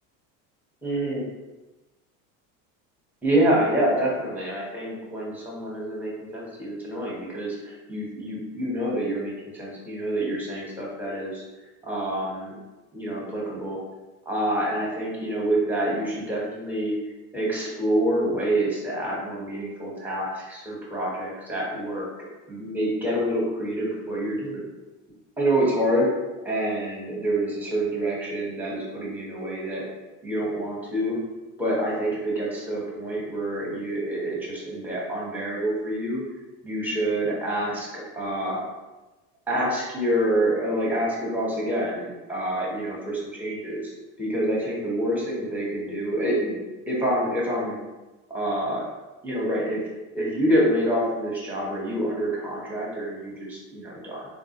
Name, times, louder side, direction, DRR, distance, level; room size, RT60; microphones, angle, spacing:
voice 1, 0.8-1.2 3.2-11.4 11.8-12.6 12.9-13.8 14.3-16.9 17.3-22.0 22.5-24.6 25.4-26.1 26.4-29.8 30.2-31.2 31.6-36.2 36.6-38.6 39.5-43.9 44.2-46.5 46.9-47.8 48.3-48.8 49.2-49.8 50.1-54.3, right 1 dB, 5° right, -5 dB, 0.9 m, -27 dB
3.7 x 2.0 x 2.8 m, 1.1 s
supercardioid pair, 120°, 39 cm